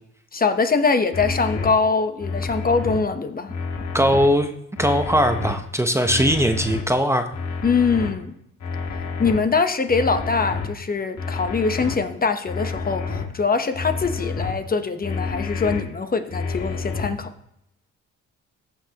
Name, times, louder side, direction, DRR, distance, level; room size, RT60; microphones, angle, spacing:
voice 1, 0.3-3.5 7.6-8.3 9.2-17.3, left 4 dB, 30° left, 8 dB, 0.9 m, -23 dB
sound 1, 1.1-1.7 2.2-3.0 3.5-4.3 4.8-5.5 6.0-6.8 7.3-8.1 8.6-9.4 9.9-10.7 11.2-12.0 12.5-13.2 13.7-14.5 15.0-15.8 16.3-17.1, left 4 dB, 60° left, 1.9 m, -29 dB
voice 2, 3.9-4.5 4.8-7.3, equal, 10° right, 6 dB, 0.8 m, -19 dB
14.5 x 6.1 x 2.9 m, 0.78 s
cardioid pair, 90°, 30 cm